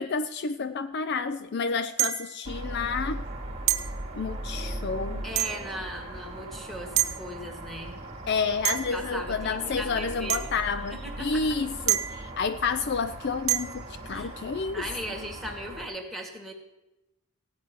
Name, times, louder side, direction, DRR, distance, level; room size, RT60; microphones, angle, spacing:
voice 1, 0.0-3.3 4.2-5.2 8.3-14.8, left 5 dB, 50° left, 0.4 m, -30 dB
sound 1, 2.0-2.4 3.7-3.9 5.4-5.7 7.0-7.2 8.6-9.0 10.3-10.5 11.9-12.3 13.5-13.8, right 13 dB, 65° right, 0.8 m, -27 dB
sound 2, 2.4-15.9, right 1 dB, 30° right, 1.7 m, -38 dB
voice 2, 5.2-8.0 8.9-10.4 10.9-11.4 14.1-14.3 14.7-16.5, equal, ahead, 1.9 m, -38 dB
15.5 x 9.5 x 6.1 m
head